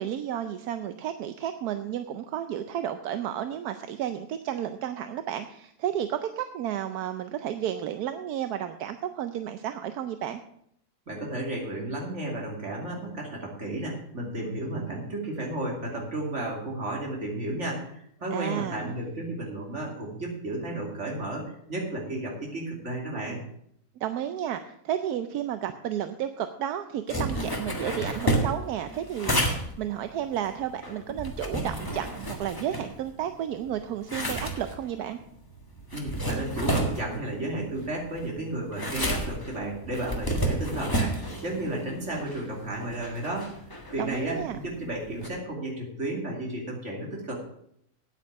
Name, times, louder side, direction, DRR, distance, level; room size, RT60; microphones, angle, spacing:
voice 1, 0.0-10.4 18.3-19.0 24.0-35.2 44.0-44.6, right 10 dB, 80° right, 9 dB, 1.2 m, -32 dB
voice 2, 11.1-23.4 35.9-43.5 43.9-47.3, right 1 dB, 50° right, -1 dB, 3.1 m, -33 dB
sound 1, 27.1-33.3 33.7-45.3, right 1 dB, 15° left, 1.5 m, -31 dB
9.3 x 8.9 x 6.3 m, 0.72 s
omnidirectional pair, 1.6 m